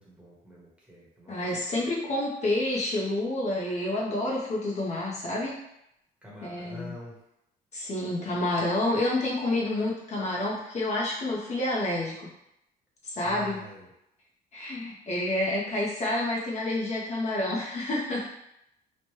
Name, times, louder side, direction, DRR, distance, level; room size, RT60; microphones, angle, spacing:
voice 1, 0.0-1.4 6.2-7.2 13.2-13.9, equal, 5° right, -6 dB, 1.0 m, -45 dB
voice 2, 1.3-5.6 6.4-6.9 7.7-12.1 13.0-13.6 14.5-18.3, left 1 dB, 40° left, -4 dB, 0.7 m, -29 dB
3.0 x 2.1 x 3.0 m, 0.81 s
cardioid pair, 110°, 17 cm